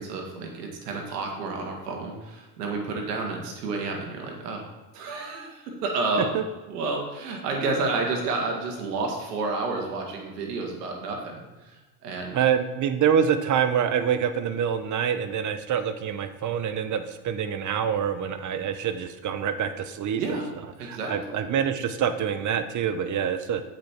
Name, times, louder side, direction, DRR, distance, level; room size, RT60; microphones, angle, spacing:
voice 1, 0.0-4.6 4.9-6.3 6.7-12.4 20.1-20.5 20.8-21.2, right 3 dB, 90° right, 1 dB, 1.8 m, -30 dB
voice 2, 12.3-20.2 20.8-23.6, right 8 dB, 40° right, 10 dB, 0.8 m, -26 dB
7.9 x 5.4 x 4.5 m, 1.2 s
supercardioid pair, 85°, 46 cm